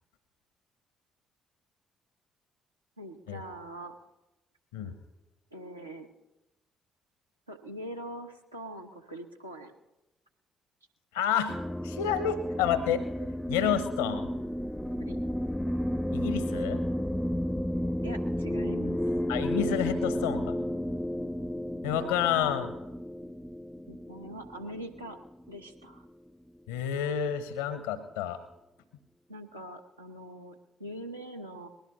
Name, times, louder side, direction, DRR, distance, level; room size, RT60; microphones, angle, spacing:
voice 1, 3.0-3.9 5.5-6.1 7.5-9.7 15.1-15.2 18.0-19.0 23.9-25.2 25.5-26.0 29.3-31.7, equal, 85° right, 2 dB, 1.0 m, -43 dB
voice 2, 11.1-13.0 13.5-14.3 16.1-16.8 19.3-20.6 21.8-22.7 26.7-28.4, left 8 dB, 70° left, 13 dB, 0.8 m, -29 dB
sound 1, 11.5-26.1, equal, 5° left, 0.5 m, -32 dB
20.5 x 17.0 x 3.1 m, 1.0 s
figure-of-eight pair, 45°, 0 cm